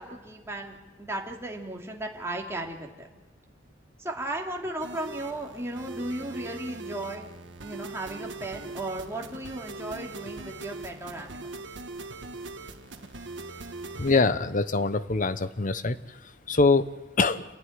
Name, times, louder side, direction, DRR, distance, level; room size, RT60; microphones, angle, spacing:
voice 1, 0.0-3.1 4.0-7.3 7.6-11.5, right 1 dB, 15° right, 0 dB, 2.7 m, -35 dB
sound 1, 4.8-14.2, right 3 dB, 75° right, 1.6 m, -41 dB
voice 2, 14.0-16.0 16.5-16.9 17.2-17.4, left 3 dB, 45° left, 13 dB, 0.9 m, -23 dB
28.5 x 11.5 x 10.0 m, 1.2 s
head